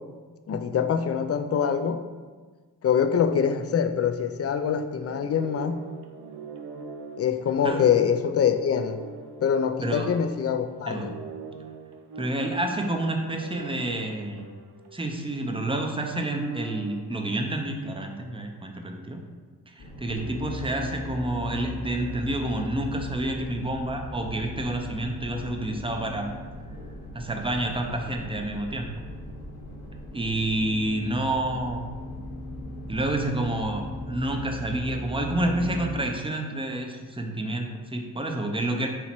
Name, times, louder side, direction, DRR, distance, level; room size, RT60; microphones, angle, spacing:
voice 1, 0.5-2.0 2.8-5.8 7.2-9.0 9.4-11.1, left 7 dB, 40° left, 9 dB, 0.4 m, -24 dB
sound 1, 5.0-10.5 10.9-15.4 15.8-17.0, right 4 dB, 80° right, 0.5 m, -42 dB
voice 2, 10.9-11.2 12.2-14.4 14.9-19.2 19.7-26.3 27.1-28.9 30.1-31.9 32.9-38.9, right 1 dB, 15° right, 3 dB, 0.7 m, -29 dB
sound 2, 19.8-36.0, left 1 dB, 70° left, 1.0 m, -37 dB
4.3 x 2.9 x 4.3 m, 1.4 s
supercardioid pair, 45°, 40 cm